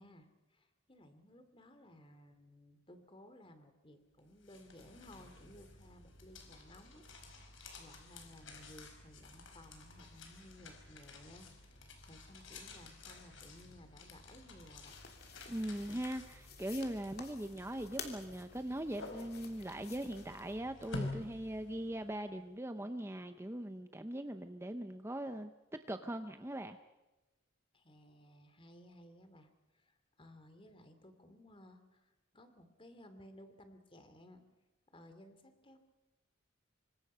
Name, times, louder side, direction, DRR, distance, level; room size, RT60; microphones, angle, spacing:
voice 1, 0.0-15.0 27.7-34.4 34.9-35.8, left 1 dB, 25° left, 9 dB, 2.6 m, -58 dB
sound 1, 4.2-22.2, left 2 dB, 70° left, 4.8 m, -51 dB
sound 2, 14.9-20.6, left 6 dB, 50° left, 3.1 m, -52 dB
voice 2, 15.5-25.5 25.9-26.8, right 1 dB, 15° right, 8 dB, 0.7 m, -40 dB
26.5 x 24.5 x 5.6 m, 1.1 s
head